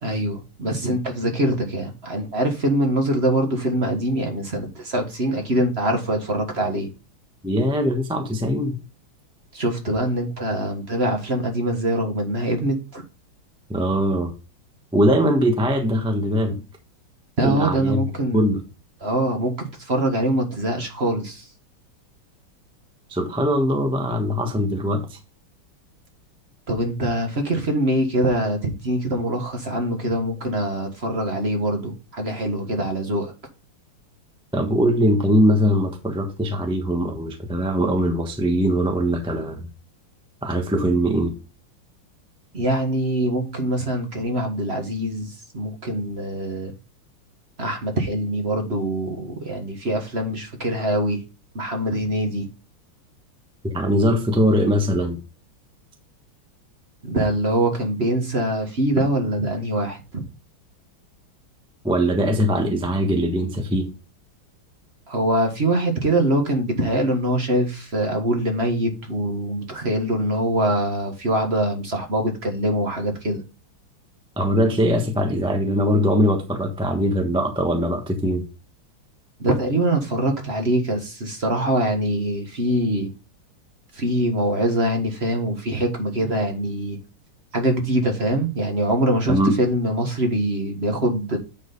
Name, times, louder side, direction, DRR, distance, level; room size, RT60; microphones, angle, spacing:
voice 1, 0.0-6.9 9.5-13.0 17.4-18.6 19.0-21.5 26.7-33.3 42.5-46.7 47.6-51.2 51.5-52.5 57.0-60.2 65.1-73.4 79.4-83.1 83.9-87.0 87.5-91.4, right 1 dB, 35° right, 1.5 m, -23 dB
voice 2, 7.4-8.8 13.7-14.3 14.9-16.6 17.4-18.0 18.3-18.6 23.1-25.2 34.5-39.7 40.4-41.3 53.6-55.2 61.8-63.9 74.4-78.4 89.3-89.6, equal, 5° right, 0.8 m, -21 dB
9.0 x 5.0 x 4.0 m
omnidirectional pair, 2.3 m